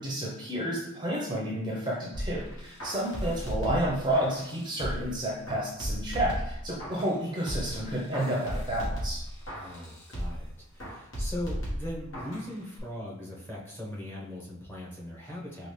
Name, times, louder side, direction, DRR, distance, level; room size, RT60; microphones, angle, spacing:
voice 1, 0.0-9.2, right 1 dB, 20° right, -4 dB, 0.7 m, -30 dB
sound 1, 2.1-5.1 5.5-7.2 7.5-10.5 10.8-12.5 12.8-12.9, equal, 65° left, 1.4 m, -35 dB
voice 2, 9.5-15.7, left 1 dB, 10° left, -5 dB, 0.9 m, -39 dB
5.0 x 2.4 x 3.2 m, 0.79 s
head